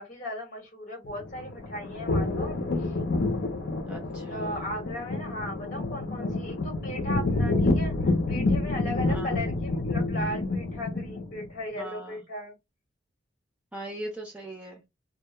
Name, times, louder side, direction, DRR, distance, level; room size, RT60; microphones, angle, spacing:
voice 1, 0.0-2.9 4.3-12.5, equal, 45° left, 1.1 m, -37 dB
sound 1, 1.0-11.5, left 2 dB, 60° left, 0.6 m, -28 dB
voice 2, 3.9-4.6 9.1-9.4 11.8-12.2 13.7-14.8, right 1 dB, 5° right, 0.4 m, -40 dB
2.2 x 2.1 x 2.9 m
head